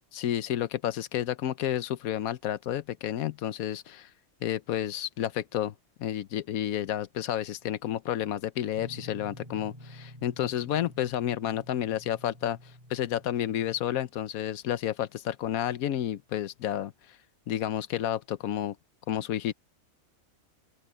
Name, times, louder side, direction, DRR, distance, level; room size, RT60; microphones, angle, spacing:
voice 1, 0.1-4.1 4.4-5.7 6.0-12.6 12.9-16.9 17.5-18.7 19.1-19.5, left 11 dB, 90° left, 1.2 m, -30 dB
Guitar, 8.7-14.0, equal, 25° right, 2.3 m, -49 dB
open air
omnidirectional pair, 1.4 m